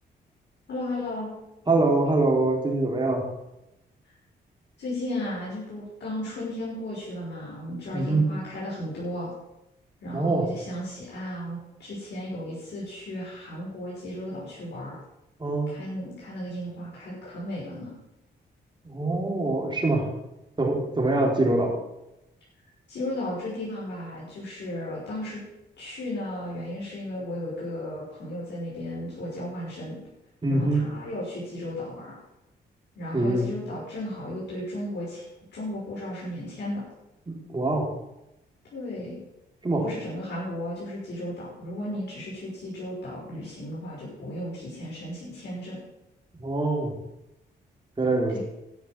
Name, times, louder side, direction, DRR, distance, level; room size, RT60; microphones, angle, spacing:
voice 1, 0.7-1.3 4.8-9.3 10.0-15.0 15.7-17.9 22.9-25.4 25.8-30.0 30.5-32.2 33.0-35.3 35.5-36.8 38.7-39.2 39.8-45.8 48.3-48.4, left 1 dB, 70° left, -7 dB, 5.9 m, -35 dB
voice 2, 1.7-3.2 7.9-8.2 10.1-10.5 15.4-15.7 18.8-20.1 20.6-21.7 30.4-30.8 33.1-33.5 37.3-37.9 39.6-39.9 46.4-46.9 48.0-48.4, right 2 dB, 25° right, -1 dB, 4.0 m, -24 dB
12.0 x 6.7 x 7.5 m, 0.89 s
cardioid pair, 75°, 19 cm